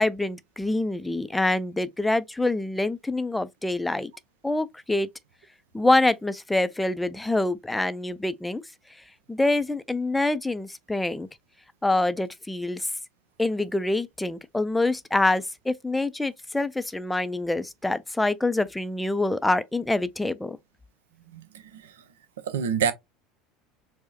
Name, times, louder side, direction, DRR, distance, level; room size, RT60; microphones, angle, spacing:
voice 1, 0.0-4.1 4.4-5.1 5.7-8.6 9.3-11.3 11.8-12.9 13.4-20.6, left 2 dB, 10° left, 0.4 m, -25 dB
voice 2, 21.3-22.0 22.4-22.9, right 7 dB, 75° right, 0.6 m, -28 dB
4.5 x 2.1 x 2.8 m
figure-of-eight pair, 70°, 0 cm